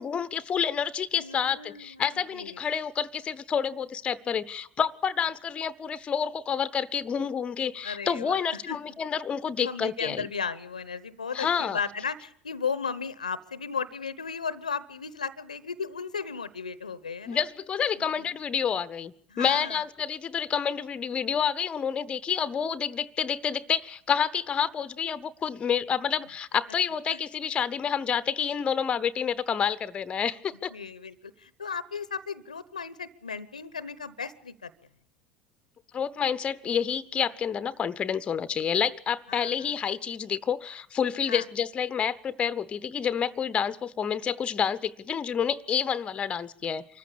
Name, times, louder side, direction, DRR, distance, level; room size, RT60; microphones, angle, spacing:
voice 1, 0.0-10.3 11.3-11.8 17.3-30.7 35.9-47.0, left 7 dB, 30° left, 15 dB, 0.9 m, -29 dB
voice 2, 1.2-2.0 2.3-2.6 7.8-8.8 9.6-17.4 18.2-18.3 19.3-19.8 27.1-27.2 30.7-34.7 39.3-39.7 41.3-41.4, left 5 dB, 80° left, 18 dB, 0.9 m, -35 dB
25.0 x 14.5 x 8.6 m, 0.66 s
figure-of-eight pair, 75°, 4 cm